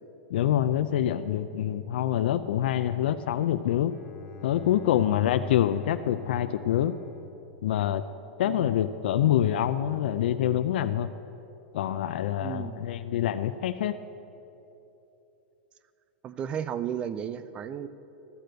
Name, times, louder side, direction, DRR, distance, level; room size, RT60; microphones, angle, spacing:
voice 1, 0.3-3.9 4.4-7.0 7.6-8.0 8.4-11.1 11.7-14.0, left 11 dB, 70° left, 10 dB, 0.4 m, -26 dB
Bowed string instrument, 3.9-8.5, left 3 dB, 15° left, 0.8 m, -46 dB
voice 2, 12.4-12.8 16.2-17.9, right 9 dB, 20° right, 14 dB, 0.3 m, -34 dB
12.0 x 7.8 x 6.7 m, 3.0 s
supercardioid pair, 165°, 6 cm